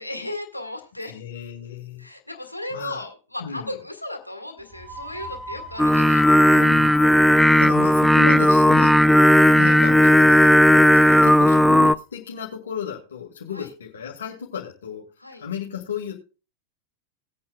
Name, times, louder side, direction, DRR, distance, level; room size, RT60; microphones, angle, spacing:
voice 1, 0.0-1.2 2.0-6.7 10.9-11.3 13.5-13.7 15.2-15.4, left 1 dB, 85° left, 4 dB, 1.8 m, -36 dB
voice 2, 1.0-2.1 2.7-3.0 3.4-3.7 6.5-9.0 9.6-10.9 11.2-15.0 15.4-16.1, left 7 dB, 65° left, -1 dB, 2.0 m, -34 dB
sound 1, 4.6-12.0, right 1 dB, 20° right, 4.9 m, -43 dB
Singing, 5.8-11.9, left 1 dB, ahead, 0.4 m, -15 dB
19.0 x 8.5 x 2.3 m, 0.33 s
figure-of-eight pair, 90°, 0 cm